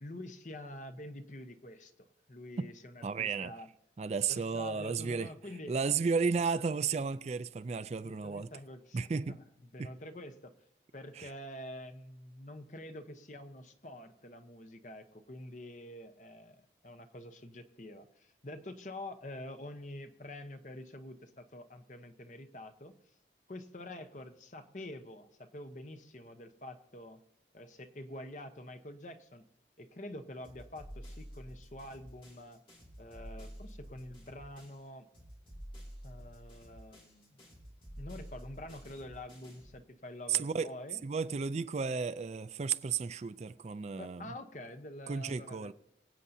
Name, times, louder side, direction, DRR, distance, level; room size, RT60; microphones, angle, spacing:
voice 1, 0.0-3.7 4.3-5.7 8.0-10.5 10.9-22.9 23.5-27.2 27.5-29.4 29.8-32.6 33.0-35.1 36.0-37.4 38.0-41.0 44.0-45.7, left 1 dB, 45° left, 0.9 m, -47 dB
voice 2, 3.0-3.5 4.0-5.3 5.7-8.5 8.9-9.4 9.8-9.9 11.2-11.3 40.3-40.7 41.0-44.3 45.1-45.7, right 5 dB, 40° right, 0.3 m, -33 dB
sound 1, 30.4-34.9 35.1-39.8, equal, 30° left, 2.7 m, -50 dB
24.5 x 8.3 x 2.7 m
head